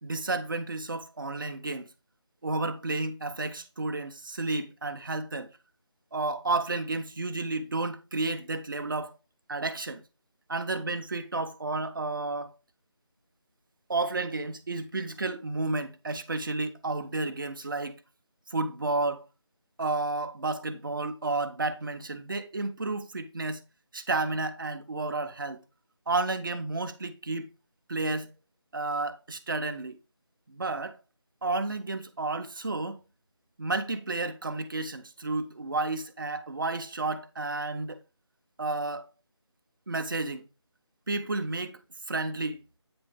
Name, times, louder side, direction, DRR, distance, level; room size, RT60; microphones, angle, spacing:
voice 1, 0.0-1.9 2.4-5.5 6.1-9.2 9.5-10.0 10.5-12.5 13.9-18.0 18.5-19.2 19.8-23.6 23.9-25.6 26.1-27.5 27.9-28.3 28.7-30.0 30.5-31.0 31.4-33.0 33.6-38.0 38.6-39.1 39.9-40.4 41.1-41.8 42.1-42.6, right 3 dB, 45° right, 0.8 m, -31 dB
8.9 x 3.3 x 4.8 m
figure-of-eight pair, 165°, 15 cm